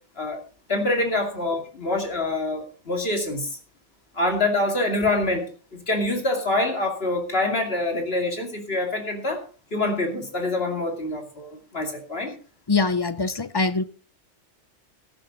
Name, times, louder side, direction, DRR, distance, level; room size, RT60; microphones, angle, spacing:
voice 1, 0.7-3.6 4.1-9.4 9.7-12.3, left 2 dB, 60° left, 2.8 m, -25 dB
voice 2, 12.7-13.8, left 3 dB, 30° left, 0.4 m, -23 dB
13.5 x 12.0 x 3.9 m
omnidirectional pair, 1.2 m